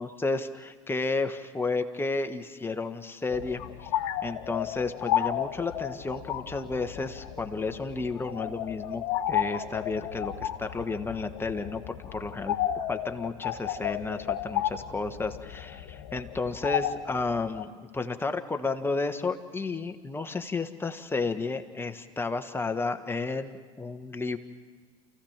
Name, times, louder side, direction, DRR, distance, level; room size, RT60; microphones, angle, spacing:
voice 1, 0.0-3.9 4.2-12.5 12.9-24.4, left 3 dB, 15° left, 7 dB, 1.5 m, -32 dB
sound 1, 3.3-17.6, left 11 dB, 70° left, 1.1 m, -33 dB
28.5 x 15.0 x 7.4 m, 1.5 s
hypercardioid pair, 75°, 16 cm